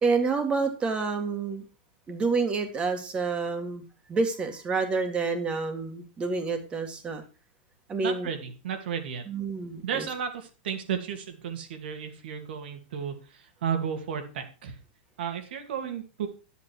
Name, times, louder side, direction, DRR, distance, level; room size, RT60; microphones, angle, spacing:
voice 1, 0.0-1.6 2.1-3.8 4.1-7.2 7.9-8.3 9.3-10.1, right 4 dB, 20° right, 6 dB, 2.1 m, -28 dB
voice 2, 8.0-9.2 9.8-13.1 13.6-14.7 15.2-16.3, right 7 dB, 75° right, 6 dB, 2.5 m, -33 dB
10.5 x 8.3 x 4.6 m, 0.33 s
supercardioid pair, 145°, 6 cm